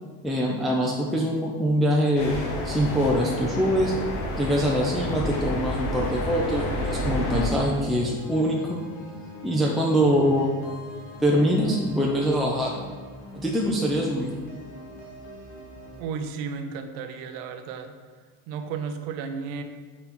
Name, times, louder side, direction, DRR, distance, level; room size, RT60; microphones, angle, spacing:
voice 1, 0.2-3.9 4.4-8.8 9.4-10.5 11.2-12.7 13.3-14.3, equal, ahead, -3 dB, 0.6 m, -24 dB
sound 1, 2.2-7.5, left 1 dB, 60° left, 1.3 m, -29 dB
sound 2, 4.5-16.0, left 1 dB, 85° left, 1.7 m, -43 dB
voice 2, 16.0-17.9 18.5-19.6, right 6 dB, 75° right, 7 dB, 0.8 m, -33 dB
6.0 x 4.3 x 4.2 m, 1.5 s
supercardioid pair, 95°, 45 cm